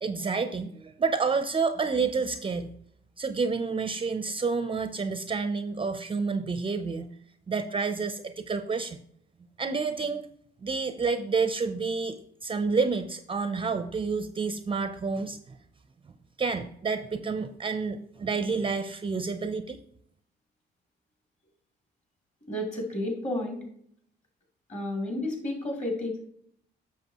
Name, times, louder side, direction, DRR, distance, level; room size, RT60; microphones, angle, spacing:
voice 1, 0.0-2.7 3.2-7.1 7.5-9.0 9.6-10.3 10.6-15.4 16.4-19.8, right 4 dB, 25° right, 10 dB, 0.5 m, -29 dB
voice 2, 22.5-23.6 24.7-26.2, left 1 dB, 35° left, 1 dB, 2.8 m, -31 dB
8.0 x 6.5 x 2.9 m, 0.66 s
cardioid pair, 90°, 20 cm